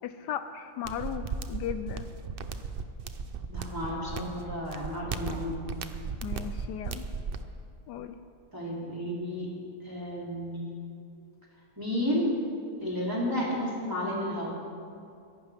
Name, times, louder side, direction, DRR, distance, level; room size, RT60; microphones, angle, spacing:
voice 1, 0.0-2.1 6.2-7.1 7.9-8.2, left 9 dB, 80° left, 10 dB, 1.2 m, -36 dB
sound 1, 0.9-7.4, right 5 dB, 75° right, 0.5 m, -36 dB
voice 2, 3.5-5.6 8.5-9.5 9.8-10.7 11.8-12.3 12.8-14.5, left 1 dB, 10° right, -6 dB, 3.3 m, -32 dB
23.0 x 11.0 x 3.5 m, 2.5 s
omnidirectional pair, 1.8 m